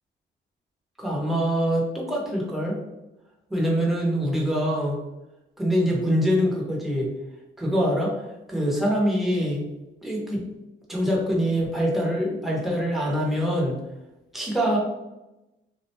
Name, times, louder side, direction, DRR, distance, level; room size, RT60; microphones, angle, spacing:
voice 1, 1.0-2.8 3.5-5.0 5.6-7.1 7.6-8.1 8.5-9.6 10.0-10.4 10.9-13.8 14.3-14.8, equal, ahead, -3 dB, 0.7 m, -24 dB
2.4 x 2.1 x 2.8 m, 0.97 s
cardioid pair, 90°, 20 cm